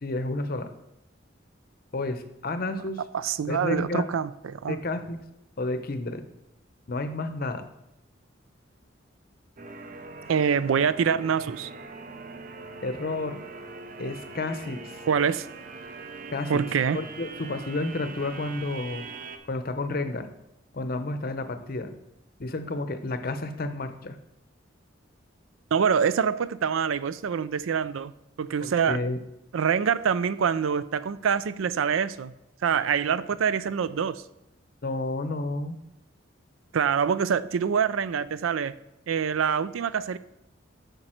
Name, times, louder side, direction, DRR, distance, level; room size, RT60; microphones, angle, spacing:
voice 1, 0.0-0.7 1.9-3.0 3.5-4.0 4.7-5.2 5.6-6.2 6.9-7.6 12.8-13.4 14.0-14.9 16.3-16.6 16.9-19.1 19.5-20.3 20.7-21.9 22.4-24.2 28.6-29.2 34.8-35.7, left 2 dB, 45° left, 9 dB, 0.7 m, -31 dB
voice 2, 3.1-4.8 10.3-11.7 15.1-15.5 16.5-17.0 25.7-28.1 28.4-29.0 29.5-32.3 32.6-34.2 36.7-38.7 39.1-40.2, right 7 dB, 85° right, 16 dB, 0.4 m, -25 dB
sound 1, 9.6-19.4, right 3 dB, 45° right, 0.6 m, -42 dB
8.9 x 5.3 x 4.4 m, 0.86 s
head